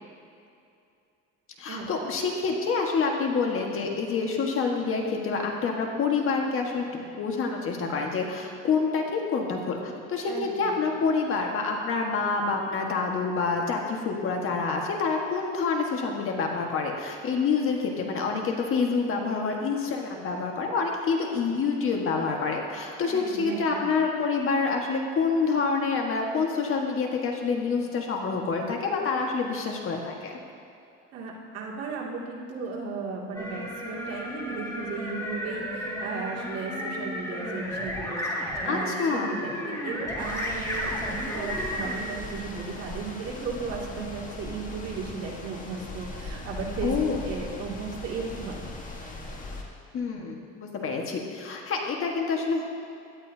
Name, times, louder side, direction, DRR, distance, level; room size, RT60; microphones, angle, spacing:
voice 1, 1.6-30.4 38.7-39.4 46.8-47.2 49.9-52.7, left 4 dB, 45° left, 1 dB, 1.6 m, -27 dB
voice 2, 10.2-10.8 23.0-23.9 31.1-49.3, right 4 dB, 55° right, -4 dB, 2.6 m, -36 dB
sound 1, 33.3-42.0, equal, 10° left, 2.1 m, -33 dB
sound 2, 40.2-49.6, left 2 dB, 25° left, 1.5 m, -39 dB
17.0 x 12.0 x 2.8 m, 2.6 s
cardioid pair, 130°, 30 cm